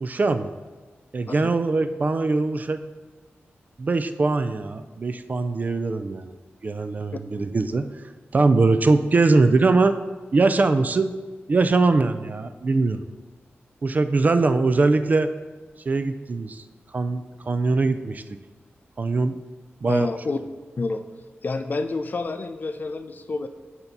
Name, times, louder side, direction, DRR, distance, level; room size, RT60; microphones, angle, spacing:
voice 1, 0.0-0.5 1.1-2.8 3.8-6.3 6.6-7.9 8.3-10.0 10.3-11.1 11.5-13.0 13.8-15.3 15.9-16.6 16.9-18.2 19.0-19.4 19.8-20.1, right 3 dB, 40° right, 10 dB, 0.3 m, -21 dB
voice 2, 19.9-20.4 20.8-21.0 21.4-23.5, left 3 dB, 45° left, 9 dB, 0.4 m, -28 dB
8.0 x 2.8 x 5.2 m, 1.4 s
wide cardioid pair, 105°, 4 cm